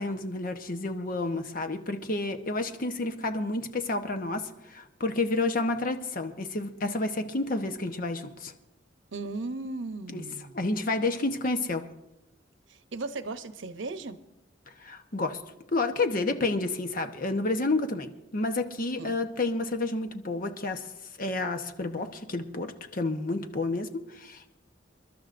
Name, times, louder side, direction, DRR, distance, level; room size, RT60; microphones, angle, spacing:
voice 1, 0.0-8.5 10.1-10.2 10.5-11.8 14.8-15.4 15.7-20.8 21.2-24.5, left 2 dB, 50° left, 7 dB, 1.0 m, -30 dB
voice 2, 9.1-10.5 12.7-14.2 19.0-19.1, right 3 dB, 85° right, 10 dB, 0.8 m, -36 dB
28.0 x 12.0 x 2.6 m, 0.90 s
head